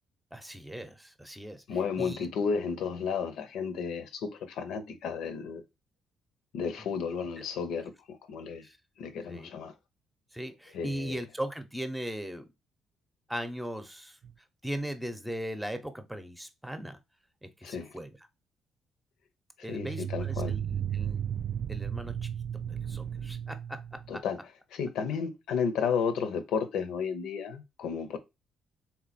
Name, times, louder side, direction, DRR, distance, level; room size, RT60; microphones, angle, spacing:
voice 1, 0.3-1.6 2.0-2.3 6.8-6.9 8.6-8.8 9.3-9.5 10.3-12.5 13.3-14.2 14.6-17.0 17.4-18.2 19.6-21.3 21.7-22.3 22.6-24.2, equal, 5° right, 0.8 m, -39 dB
voice 2, 1.7-5.6 6.5-8.7 9.0-9.7 10.7-11.2 17.6-17.9 19.7-20.5 24.1-24.4 24.7-28.2, left 6 dB, 85° left, 0.7 m, -32 dB
sound 1, 14.2-14.3 19.7-24.2, right 9 dB, 55° right, 0.3 m, -34 dB
3.7 x 3.0 x 4.1 m
cardioid pair, 90°, 0 cm